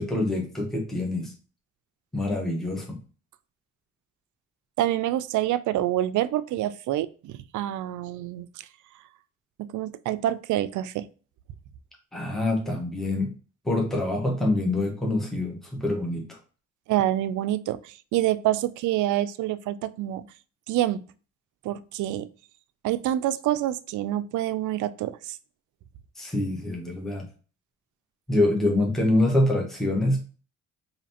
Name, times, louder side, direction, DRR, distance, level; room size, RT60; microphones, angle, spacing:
voice 1, 0.0-1.3 2.1-3.0 12.1-13.3 13.6-16.3 26.2-27.3 28.3-30.2, left 1 dB, ahead, -1 dB, 1.1 m, -25 dB
voice 2, 4.8-8.5 9.7-11.1 16.9-17.8 18.1-20.2 20.7-21.0 21.6-22.3 22.8-25.4, right 13 dB, 75° right, 14 dB, 0.4 m, -26 dB
5.0 x 2.8 x 2.8 m, 0.37 s
cardioid pair, 90°, 30 cm